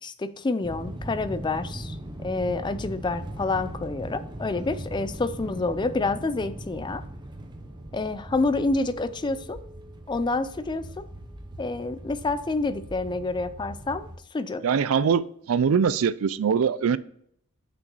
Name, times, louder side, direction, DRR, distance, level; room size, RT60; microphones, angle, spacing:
voice 1, 0.0-7.0 7.9-9.6 10.1-11.1 11.6-14.7, left 3 dB, 20° left, 0.4 m, -28 dB
sound 1, 0.6-14.2, right 1 dB, 20° right, 0.8 m, -39 dB
voice 2, 14.6-17.0, right 6 dB, 70° right, 0.4 m, -22 dB
6.0 x 6.0 x 5.4 m
head